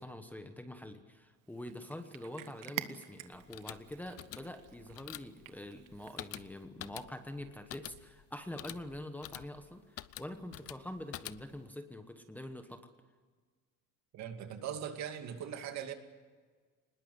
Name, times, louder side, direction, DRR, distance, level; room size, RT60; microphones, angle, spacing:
voice 1, 0.0-12.9, left 1 dB, 5° left, 7 dB, 1.2 m, -45 dB
Cat, 1.4-6.7, right 14 dB, 75° right, 1.3 m, -48 dB
sound 1, 3.3-11.7, left 13 dB, 45° left, 0.7 m, -48 dB
voice 2, 14.1-15.9, right 9 dB, 55° right, 6 dB, 2.4 m, -40 dB
24.0 x 20.5 x 8.0 m, 1.5 s
cardioid pair, 155°, 33 cm